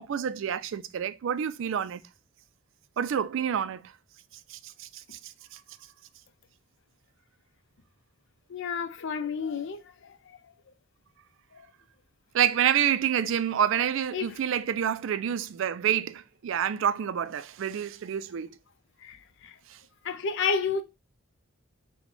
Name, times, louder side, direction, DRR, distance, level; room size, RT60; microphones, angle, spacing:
voice 1, 0.0-2.0 3.0-3.8 4.5-5.6 12.3-18.5, right 9 dB, 65° right, 0.3 m, -28 dB
voice 2, 8.5-9.8 14.1-14.3 19.0-19.2 19.4-19.5 20.0-20.8, left 5 dB, 65° left, 0.5 m, -30 dB
4.3 x 2.1 x 4.0 m
head